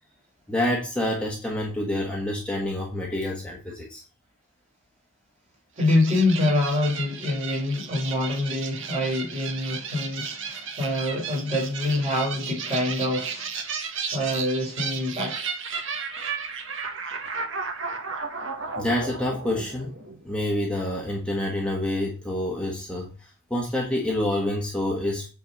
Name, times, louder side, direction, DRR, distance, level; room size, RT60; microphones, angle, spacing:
voice 1, 0.5-4.0 18.8-19.9 20.2-25.3, left 1 dB, 5° left, 1.3 m, -27 dB
voice 2, 5.8-13.5 14.1-15.4, left 2 dB, 30° right, 3.8 m, -25 dB
sound 1, 5.8-20.4, right 5 dB, 55° right, 1.4 m, -34 dB
8.8 x 4.0 x 5.2 m
head